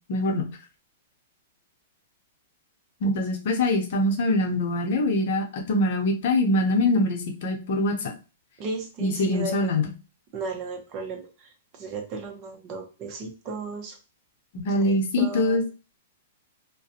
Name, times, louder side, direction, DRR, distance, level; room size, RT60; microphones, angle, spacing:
voice 1, 0.1-0.4 3.0-8.1 9.0-9.9 14.5-15.6, left 1 dB, 60° left, 2 dB, 0.7 m, -23 dB
voice 2, 8.6-9.7 10.3-11.5 11.8-14.0 14.7-15.6, right 3 dB, 40° right, 3 dB, 0.8 m, -35 dB
2.4 x 2.2 x 2.7 m, 0.32 s
hypercardioid pair, 125°, 0 cm